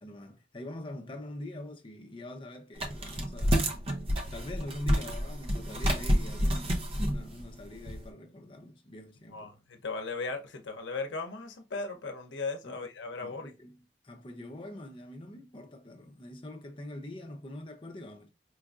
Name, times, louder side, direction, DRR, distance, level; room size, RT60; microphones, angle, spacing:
voice 1, 0.0-3.7 4.3-9.5 12.6-12.8 13.2-13.8 14.0-18.3, left 1 dB, 30° left, 0.6 m, -44 dB
sound 1, 2.8-8.1, equal, 30° right, 0.6 m, -29 dB
voice 2, 9.3-13.5, left 3 dB, 90° left, 0.7 m, -37 dB
4.6 x 2.5 x 2.3 m
head